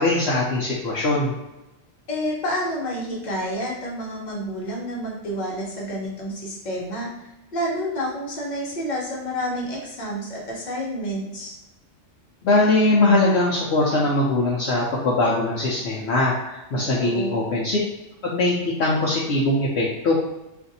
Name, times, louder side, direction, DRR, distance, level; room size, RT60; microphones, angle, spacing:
voice 1, 0.0-1.3 12.4-17.8 18.2-20.1, left 2 dB, 65° left, -5 dB, 0.8 m, -21 dB
voice 2, 2.1-7.1 7.5-11.6 17.0-17.4, equal, 40° left, -3 dB, 1.0 m, -29 dB
2.6 x 2.5 x 4.0 m, 0.98 s
omnidirectional pair, 1.3 m